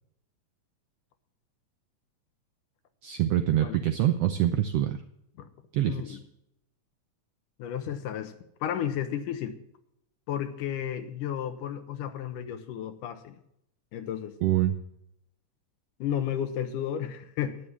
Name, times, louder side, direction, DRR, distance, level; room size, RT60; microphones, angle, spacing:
voice 1, 3.0-5.0 5.7-6.2 14.4-14.7, right 12 dB, 80° right, 8 dB, 1.3 m, -25 dB
voice 2, 5.8-6.2 7.6-8.3 8.6-9.6 10.3-13.4 13.9-14.4 16.0-17.6, left 9 dB, 90° left, 9 dB, 2.7 m, -33 dB
11.0 x 9.9 x 6.0 m, 0.77 s
omnidirectional pair, 3.6 m